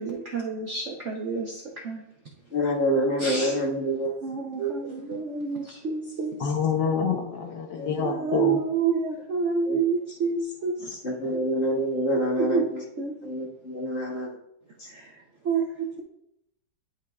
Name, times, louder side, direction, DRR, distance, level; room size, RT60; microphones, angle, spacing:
voice 1, 0.0-2.0 3.2-3.5 4.2-6.5 8.0-11.0 11.3-11.4 12.1-12.6 13.0-13.1 14.9-15.1 15.4-16.0, right 5 dB, 60° right, 0 dB, 0.8 m, -29 dB
voice 2, 2.5-4.1 4.6-4.7 7.7-8.3 9.7-9.8 11.0-12.8 13.2-14.3, equal, 35° left, -4 dB, 1.7 m, -27 dB
voice 3, 6.4-8.6 11.2-11.3, left 6 dB, 65° left, 4 dB, 1.3 m, -27 dB
10.5 x 5.8 x 2.3 m, 0.80 s
omnidirectional pair, 2.1 m